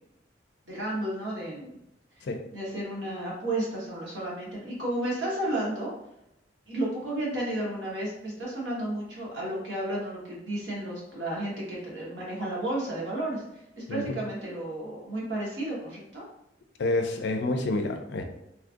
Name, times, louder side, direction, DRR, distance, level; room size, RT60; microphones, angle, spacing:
voice 1, 0.7-1.8 2.5-5.9 6.7-16.2, right 1 dB, 80° right, -5 dB, 1.2 m, -32 dB
voice 2, 16.8-18.2, left 2 dB, 70° left, 5 dB, 0.4 m, -28 dB
3.1 x 2.4 x 2.5 m, 0.84 s
head